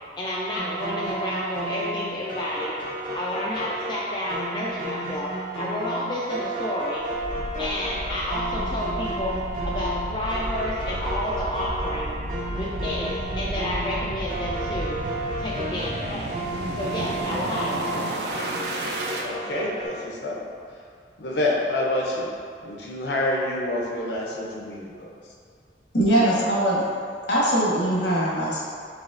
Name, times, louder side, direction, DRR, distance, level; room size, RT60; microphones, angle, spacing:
voice 1, 0.2-2.7 3.1-7.0 7.6-9.4 9.6-12.2 12.6-15.0 15.4-16.3 16.7-18.2, left 1 dB, 25° left, -5 dB, 0.3 m, -30 dB
sound 1, 0.6-19.9, right 1 dB, 45° right, 0.8 m, -33 dB
sound 2, 7.0-19.2, right 1 dB, 70° right, 0.4 m, -33 dB
voice 2, 19.2-20.4 21.2-22.3 22.6-25.1, left 1 dB, 70° left, -2 dB, 0.7 m, -27 dB
voice 3, 25.9-26.8 27.3-28.6, right 1 dB, 90° left, -5 dB, 1.1 m, -21 dB
4.9 x 3.9 x 2.5 m, 2.3 s
head